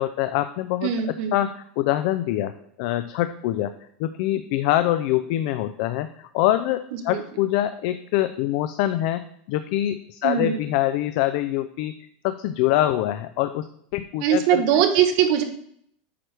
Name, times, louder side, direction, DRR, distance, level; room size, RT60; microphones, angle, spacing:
voice 1, 0.0-3.7 4.0-12.0 12.2-13.7 13.9-14.6, left 14 dB, 55° left, 10 dB, 0.4 m, -24 dB
voice 2, 0.8-1.3 7.1-7.2 10.2-10.6 14.2-15.4, right 9 dB, 50° right, 6 dB, 1.1 m, -21 dB
8.6 x 6.1 x 3.4 m, 0.67 s
supercardioid pair, 165°, 5 cm